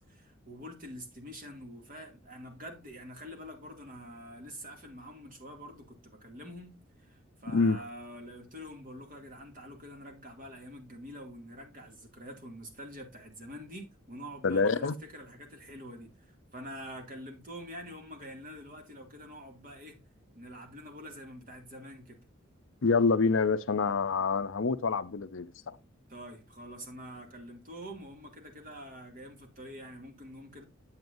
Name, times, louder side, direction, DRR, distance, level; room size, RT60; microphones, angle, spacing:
voice 1, 0.1-20.0 20.3-22.2 26.1-30.6, equal, 40° right, 2.3 m, -46 dB
voice 2, 14.4-14.9 22.8-25.8, left 4 dB, 70° left, 0.6 m, -26 dB
9.4 x 8.2 x 2.6 m
head